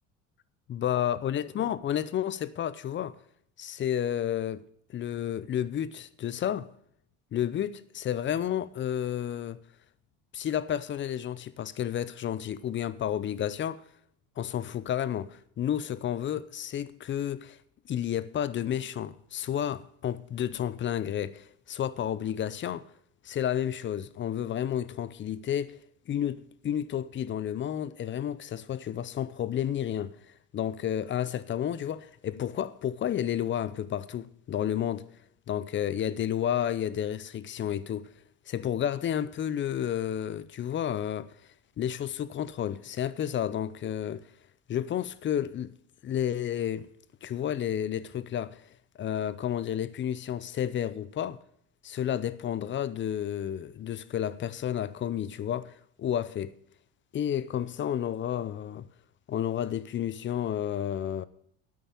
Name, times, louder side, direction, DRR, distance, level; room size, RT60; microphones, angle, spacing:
voice 1, 0.7-3.2 3.6-4.6 4.9-6.7 7.3-9.6 10.3-13.8 14.4-17.6 17.9-22.9 23.2-25.8 26.1-30.2 30.5-35.1 35.5-38.0 38.5-41.3 41.8-44.2 44.7-45.7 46.0-46.9 47.2-48.6 49.0-51.4 51.8-55.7 56.0-56.5 57.1-58.9 59.3-61.3, left 10 dB, 35° left, 0.7 m, -31 dB
9.2 x 8.6 x 8.5 m
cardioid pair, 115°, 32 cm